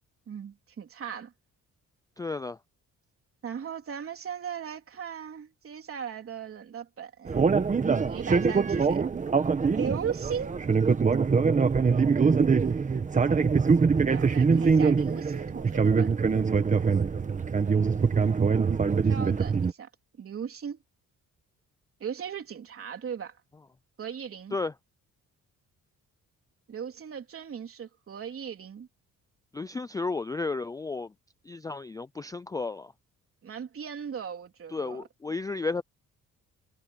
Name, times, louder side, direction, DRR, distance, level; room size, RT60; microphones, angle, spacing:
voice 1, 0.3-1.3 3.4-7.5 8.0-9.0 9.7-10.5 14.0-16.1 19.1-19.9 20.2-20.8 22.0-23.4 24.0-24.6 26.7-28.9 33.4-35.0, right 7 dB, 45° right, 3.6 m, -37 dB
voice 2, 2.2-2.6 8.1-8.2 24.5-24.7 29.5-31.1 31.5-32.9 34.7-35.8, left 3 dB, 10° left, 0.3 m, -33 dB
sound 1, 7.3-19.7, right 5 dB, 25° right, 1.2 m, -23 dB
cardioid pair, 155°, 32 cm